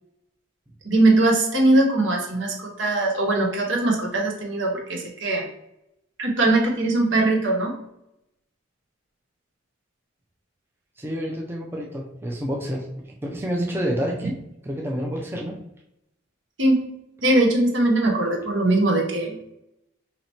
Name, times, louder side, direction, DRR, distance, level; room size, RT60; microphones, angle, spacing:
voice 1, 0.8-5.5 6.2-7.8 16.6-16.8 17.2-19.5, right 2 dB, 75° right, 0 dB, 0.9 m, -21 dB
voice 2, 11.0-14.3 14.6-15.6, equal, 10° right, -1 dB, 0.4 m, -28 dB
2.9 x 2.8 x 4.3 m, 0.83 s
head